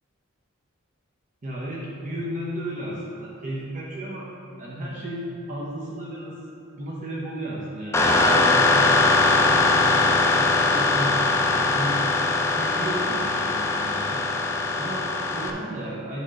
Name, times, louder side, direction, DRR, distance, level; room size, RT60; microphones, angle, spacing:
voice 1, 1.4-4.3 4.6-6.4 6.8-9.0 9.3-12.0 12.5-14.3 14.7-16.2, right 1 dB, 40° right, -5 dB, 0.8 m, -33 dB
sound 1, 7.9-15.5, left 3 dB, 15° left, 0.5 m, -21 dB
8.8 x 3.4 x 6.1 m, 2.8 s
head